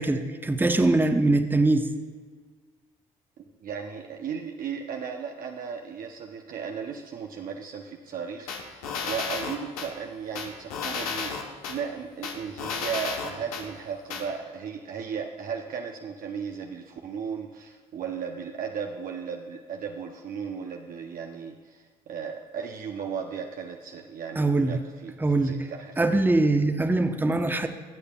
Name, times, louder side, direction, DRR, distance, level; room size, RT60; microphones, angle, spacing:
voice 1, 0.0-1.9 24.3-24.8 25.2-25.7 26.0-27.7, right 2 dB, 10° right, 6 dB, 0.9 m, -22 dB
voice 2, 3.6-25.1 25.4-25.9, right 6 dB, 50° right, 2 dB, 0.8 m, -36 dB
sound 1, 8.5-9.9 10.3-11.8 12.2-13.6 14.1-14.2, left 5 dB, 80° left, 1.0 m, -32 dB
21.0 x 8.3 x 2.3 m, 1.5 s
hypercardioid pair, 45°, 18 cm